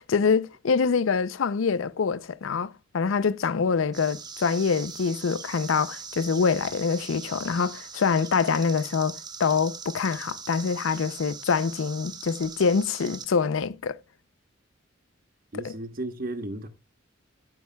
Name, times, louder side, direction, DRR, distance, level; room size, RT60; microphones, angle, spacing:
voice 1, 0.0-14.0 15.6-15.7, left 5 dB, 75° left, 0.5 m, -25 dB
sound 1, 3.9-13.2, right 6 dB, 20° right, 1.0 m, -41 dB
voice 2, 15.5-16.7, right 1 dB, 45° right, 1.0 m, -34 dB
14.0 x 9.1 x 2.2 m
head